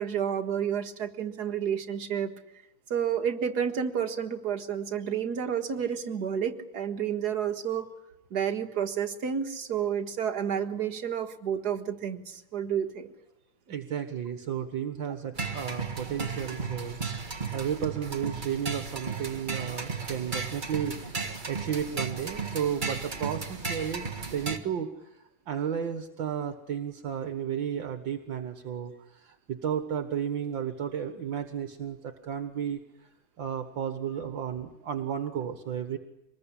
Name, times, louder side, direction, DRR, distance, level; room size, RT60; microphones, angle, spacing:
voice 1, 0.0-2.3 2.9-7.9 8.3-13.1, right 8 dB, 55° right, 6 dB, 2.1 m, -30 dB
voice 2, 13.7-17.3 17.5-33.1 33.4-36.0, right 8 dB, 70° right, 7 dB, 2.1 m, -33 dB
sound 1, 15.4-24.6, right 4 dB, 25° right, 1.6 m, -35 dB
25.5 x 21.0 x 9.9 m, 0.91 s
omnidirectional pair, 2.2 m